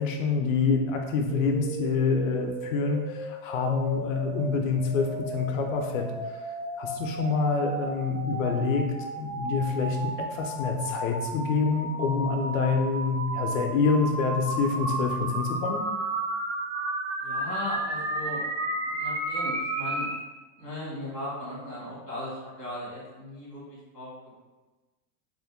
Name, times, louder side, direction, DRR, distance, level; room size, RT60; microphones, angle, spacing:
voice 1, 0.0-6.1 6.8-15.8, left 4 dB, 60° left, 3 dB, 0.5 m, -27 dB
sound 1, 1.3-20.2, right 2 dB, 50° right, 0.6 m, -33 dB
voice 2, 17.2-20.1 20.6-24.1, left 1 dB, 15° right, -15 dB, 0.4 m, -37 dB
2.5 x 2.2 x 3.5 m, 1.2 s
supercardioid pair, 175°, 46 cm